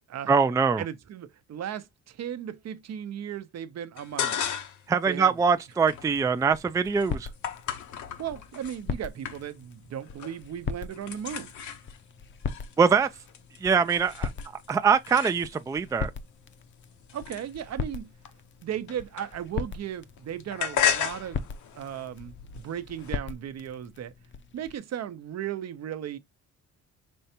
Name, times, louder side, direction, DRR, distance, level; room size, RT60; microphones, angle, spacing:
voice 1, 0.3-0.8 4.9-7.3 12.8-13.1 13.6-14.3 14.7-16.1, right 6 dB, 10° right, 0.3 m, -23 dB
voice 2, 0.8-4.4 5.1-5.3 8.2-11.5 17.1-18.1 18.6-21.5 21.7-24.1 24.5-26.2, right 10 dB, 60° right, 0.7 m, -36 dB
sound 1, 4.0-4.9 5.3-8.8 9.2-9.8 10.0-10.5 10.7-15.8 16.4-19.7 20.0-23.1, left 9 dB, 70° left, 1.0 m, -35 dB
sound 2, 5.9-24.8, left 5 dB, 40° left, 0.7 m, -40 dB
5.3 x 3.3 x 2.9 m
cardioid pair, 90°, 30 cm